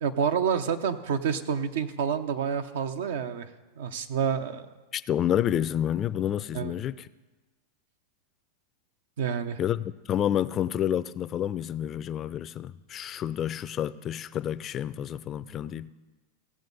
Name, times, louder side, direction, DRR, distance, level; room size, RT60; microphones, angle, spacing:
voice 1, 0.0-3.5 3.8-4.7 6.5-6.7 9.2-9.6, right 7 dB, 75° right, 0.7 m, -28 dB
voice 2, 4.9-7.1 9.6-15.9, left 10 dB, 35° left, 0.4 m, -29 dB
16.5 x 7.3 x 4.0 m
hypercardioid pair, 110°, 0 cm